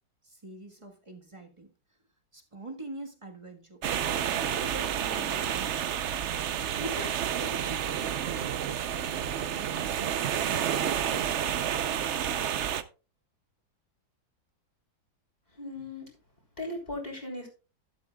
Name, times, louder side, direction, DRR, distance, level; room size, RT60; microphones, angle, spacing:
voice 1, 0.2-2.0 2.3-3.8 4.3-6.3 6.8-12.0, right 1 dB, 20° right, 1.4 m, -45 dB
sound 1, 3.8-12.8, right 9 dB, 65° right, 0.7 m, -30 dB
voice 2, 15.5-16.1 16.6-17.5, left 2 dB, 20° left, 3.9 m, -37 dB
12.0 x 11.5 x 2.3 m
omnidirectional pair, 1.9 m